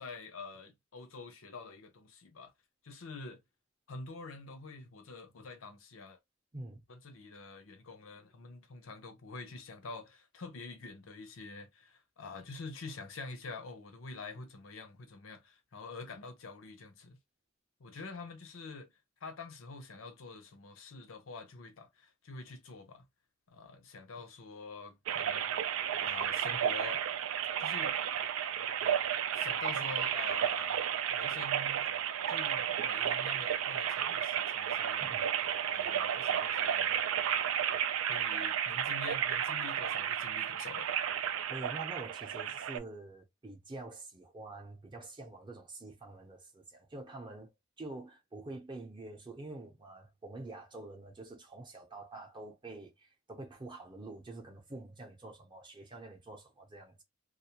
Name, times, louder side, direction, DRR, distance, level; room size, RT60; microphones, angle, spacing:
voice 1, 0.0-2.5 2.8-3.4 3.9-6.2 6.9-17.2 17.8-18.9 19.2-23.0 23.5-27.0 27.6-27.9 29.3-31.9 32.3-35.2 35.6-37.0 38.1-40.9, left 3 dB, 80° left, 0.6 m, -46 dB
voice 2, 6.5-6.8 35.0-35.3 41.5-47.5 47.8-57.0, right 2 dB, 25° right, 0.6 m, -46 dB
sound 1, 25.1-42.8, right 9 dB, 80° right, 0.3 m, -32 dB
2.3 x 2.1 x 2.8 m
head